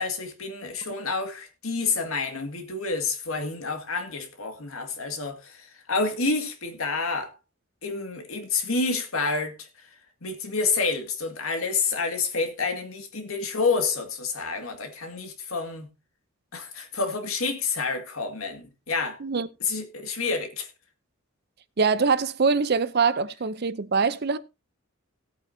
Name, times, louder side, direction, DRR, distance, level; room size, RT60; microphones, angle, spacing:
voice 1, 0.0-7.3 7.8-9.7 10.2-15.9 16.5-19.2 19.6-20.7, left 4 dB, 90° left, 2.1 m, -29 dB
voice 2, 21.8-24.4, right 5 dB, 50° right, 0.6 m, -23 dB
17.5 x 8.6 x 2.7 m
head